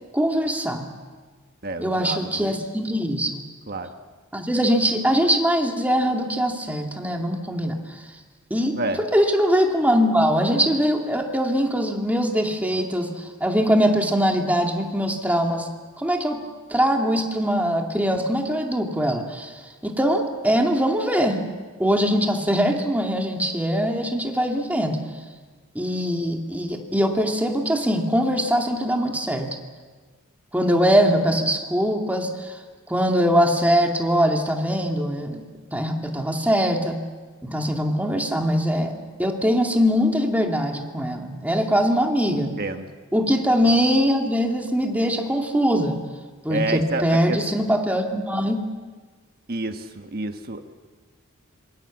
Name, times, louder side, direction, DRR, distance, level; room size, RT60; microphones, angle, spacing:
voice 1, 0.1-0.8 1.8-3.4 4.3-8.0 8.5-8.8 9.1-15.7 16.0-16.4 16.7-21.5 21.8-25.0 25.7-29.5 30.5-32.6 32.9-35.4 35.7-37.0 37.4-38.9 39.2-42.5 43.1-46.0 46.4-48.6, equal, 5° right, 2 dB, 2.4 m, -22 dB
voice 2, 1.6-2.5 3.7-3.9 8.7-9.0 42.6-42.9 46.5-47.4 49.5-50.6, right 2 dB, 45° right, 7 dB, 1.4 m, -28 dB
26.0 x 23.5 x 7.3 m, 1.4 s
head